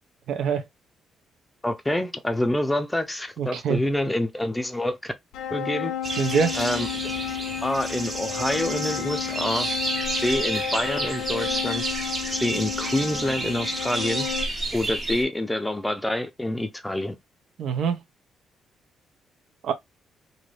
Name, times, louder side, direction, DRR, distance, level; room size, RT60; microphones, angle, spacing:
voice 1, 0.3-0.6 3.4-3.8 6.2-6.6 17.6-18.0 19.6-19.7, right 6 dB, 75° right, 0.7 m, -24 dB
voice 2, 1.6-5.1 5.5-5.9 6.5-9.7 10.2-11.8 12.3-14.3 14.7-17.2, left 1 dB, 10° left, 0.5 m, -27 dB
sound 1, 5.3-14.5, left 10 dB, 85° left, 0.5 m, -32 dB
sound 2, 6.0-15.2, right 2 dB, 35° right, 1.2 m, -30 dB
2.7 x 2.5 x 3.3 m
cardioid pair, 90°, 0 cm